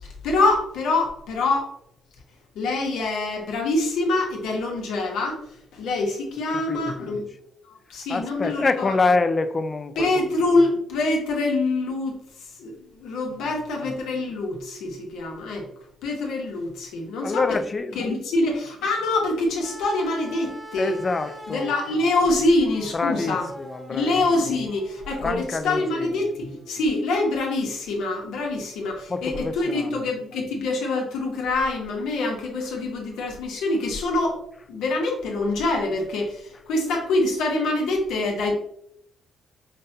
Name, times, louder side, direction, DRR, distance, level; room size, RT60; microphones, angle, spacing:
voice 1, 0.0-1.7 2.5-5.4 5.7-7.3 7.7-8.9 10.0-12.2 12.6-15.7 16.0-17.6 17.9-20.9 21.5-23.5 23.9-34.4 34.7-38.5, left 2 dB, 85° left, 0.9 m, -25 dB
voice 2, 6.5-7.2 8.1-10.3 13.4-13.6 17.0-18.1 20.8-21.7 22.9-24.2 25.2-26.3 29.1-30.0 32.6-32.7, left 3 dB, 30° left, 0.3 m, -27 dB
sound 1, 19.6-27.8 29.0-29.1, right 1 dB, 15° right, 0.6 m, -42 dB
5.1 x 2.2 x 2.7 m
cardioid pair, 90°, 0 cm